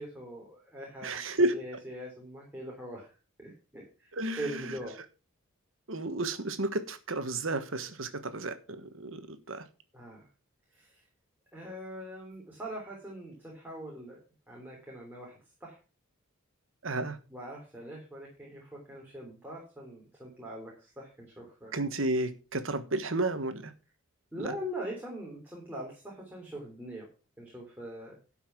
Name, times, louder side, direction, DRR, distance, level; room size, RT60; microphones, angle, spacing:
voice 1, 0.0-3.1 3.4-5.0 9.9-10.2 10.7-11.0 11.5-14.2 14.5-15.3 15.6-15.8 17.3-21.7 24.3-27.0 27.4-28.2, equal, 10° right, 3.5 m, -42 dB
voice 2, 1.0-1.5 4.2-4.6 5.9-9.6 16.8-17.2 21.7-23.7 24.4-24.5, right 2 dB, 65° right, 1.4 m, -32 dB
12.0 x 5.8 x 6.1 m
head